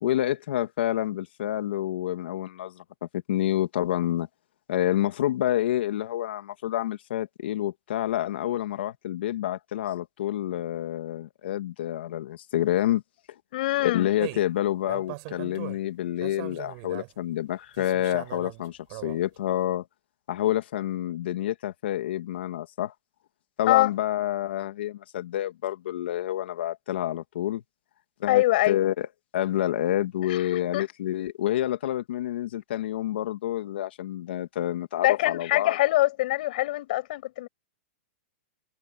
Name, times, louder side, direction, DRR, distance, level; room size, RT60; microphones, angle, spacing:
voice 1, 0.0-4.3 4.7-13.0 13.8-19.9 20.3-22.9 23.6-27.6 28.2-29.1 29.3-35.8, left 12 dB, 60° left, 2.5 m, -28 dB
voice 2, 13.5-14.1 23.7-23.9 28.3-28.8 30.2-30.9 35.0-37.5, left 17 dB, 45° left, 6.4 m, -24 dB
sound 1, 14.2-14.5 14.9-15.8 16.2-17.1 17.7-19.2, right 31 dB, 35° right, 5.1 m, -39 dB
supercardioid pair, 175°, 6 cm